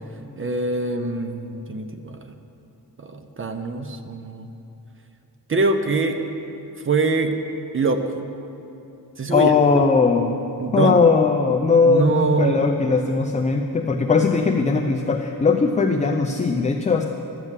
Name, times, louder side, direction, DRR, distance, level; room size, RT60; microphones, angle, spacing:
voice 1, 0.4-2.3 3.0-4.5 5.5-6.2 6.8-7.3 7.7-8.3 9.2-9.5 10.6-11.0 11.8-12.7, right 3 dB, 35° right, 7 dB, 0.6 m, -23 dB
voice 2, 9.3-10.4 10.7-17.0, left 4 dB, 20° left, 3 dB, 0.4 m, -19 dB
12.0 x 8.2 x 7.3 m, 2.9 s
wide cardioid pair, 170°, 39 cm